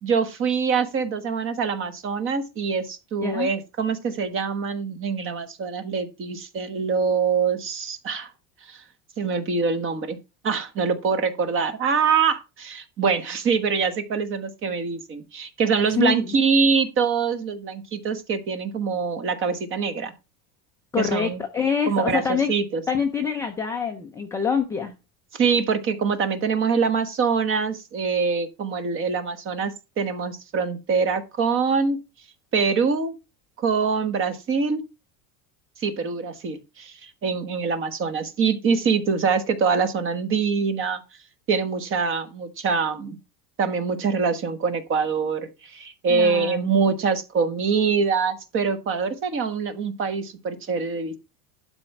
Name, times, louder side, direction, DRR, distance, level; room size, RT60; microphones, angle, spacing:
voice 1, 0.0-8.3 8.6-8.8 9.2-10.2 10.4-20.1 21.0-21.4 21.9-22.2 22.5-22.8 25.3-32.0 32.5-33.2 33.6-34.8 35.8-41.0 41.5-43.2 43.6-51.2, right 5 dB, 25° right, 10 dB, 1.3 m, -24 dB
voice 2, 3.2-3.5 16.0-16.4 20.9-22.5 22.9-24.9 46.1-46.8, left 6 dB, 5° left, 2 dB, 0.5 m, -25 dB
11.5 x 4.4 x 5.9 m, 0.27 s
cardioid pair, 170°, 46 cm